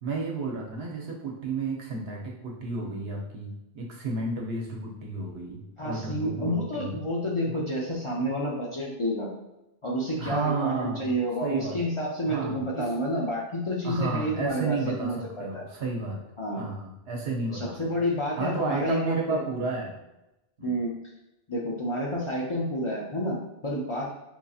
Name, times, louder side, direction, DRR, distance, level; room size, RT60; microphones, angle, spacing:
voice 1, 0.0-6.9 10.2-11.1 11.4-11.8 12.3-12.9 13.8-16.2 16.6-17.8 18.4-20.0 20.6-20.7, right 3 dB, 80° right, 0 dB, 1.0 m, -32 dB
voice 2, 5.8-9.3 9.8-15.6 16.4-16.6 17.5-19.4 20.6-21.0 21.5-24.1, equal, 40° left, -4 dB, 0.5 m, -29 dB
4.5 x 2.7 x 2.3 m, 0.94 s
omnidirectional pair, 1.0 m